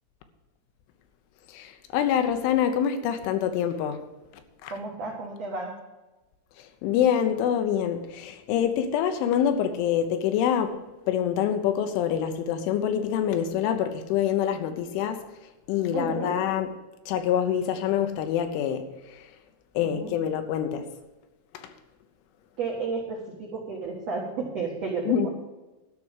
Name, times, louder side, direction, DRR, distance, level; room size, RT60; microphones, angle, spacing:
voice 1, 1.5-4.0 4.6-4.7 6.8-10.8 11.1-15.2 15.7-16.7 17.1-19.2 19.7-20.9 21.5-21.7 25.1-25.3, left 9 dB, 80° left, 3.3 m, -26 dB
voice 2, 4.7-5.7 15.9-16.3 19.8-20.1 22.6-25.3, right 4 dB, 80° right, 1.5 m, -32 dB
12.5 x 6.0 x 8.1 m
omnidirectional pair, 5.6 m